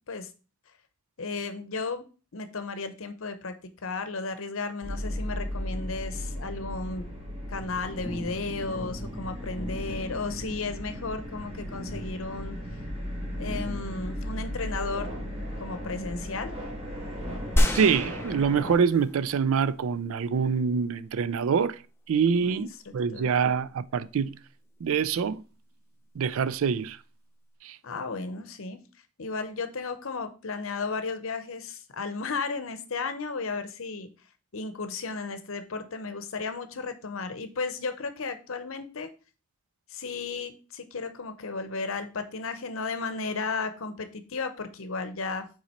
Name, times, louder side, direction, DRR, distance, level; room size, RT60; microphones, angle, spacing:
voice 1, 1.2-2.0 2.3-3.6 3.8-7.1 7.5-12.6 13.4-15.1 15.6-16.5 22.3-22.7 23.1-23.3 27.8-28.8 29.2-34.1 34.5-39.1 39.9-45.5, left 4 dB, 65° left, 0.7 m, -34 dB
sound 1, 4.8-18.7, equal, 25° right, 1.8 m, -36 dB
sound 2, 17.6-19.3 19.8-19.9, equal, 10° left, 0.5 m, -27 dB
voice 2, 17.7-21.8 22.1-22.7 22.9-24.4 24.8-25.4 26.2-27.0 27.6-27.8, right 6 dB, 70° right, 0.3 m, -25 dB
5.8 x 3.9 x 4.2 m
head